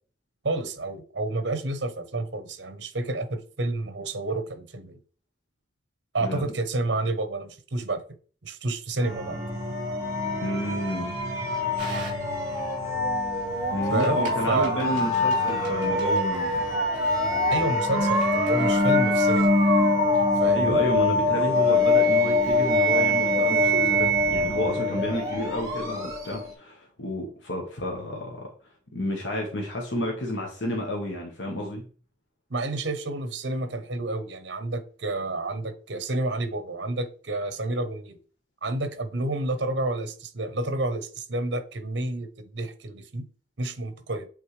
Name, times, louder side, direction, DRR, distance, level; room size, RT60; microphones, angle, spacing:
voice 1, 0.4-5.0 6.1-8.0 8.4-9.4 13.9-14.8 17.5-19.5 20.4-20.8 32.5-38.2 38.6-43.3 43.6-44.3, right 2 dB, 65° right, 0.9 m, -29 dB
sound 1, 9.0-26.5, left 1 dB, 15° right, 1.8 m, -24 dB
voice 2, 10.4-11.1 13.7-16.7 20.5-28.5 28.9-31.8, left 1 dB, 75° left, 1.3 m, -31 dB
sound 2, 11.8-18.8, right 2 dB, 45° right, 3.0 m, -44 dB
8.4 x 3.6 x 3.3 m
head